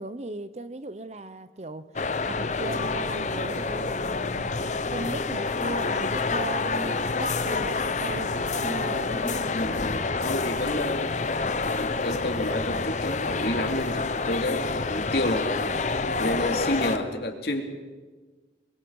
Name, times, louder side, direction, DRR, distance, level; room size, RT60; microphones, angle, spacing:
voice 1, 0.0-1.9 2.2-4.5 4.9-9.7, right 2 dB, 35° right, 0.7 m, -37 dB
sound 1, 2.0-17.0, left 3 dB, 40° left, 0.7 m, -28 dB
voice 2, 9.5-11.1 11.6-17.6, left 1 dB, 60° left, 2.7 m, -30 dB
28.0 x 23.0 x 4.8 m
head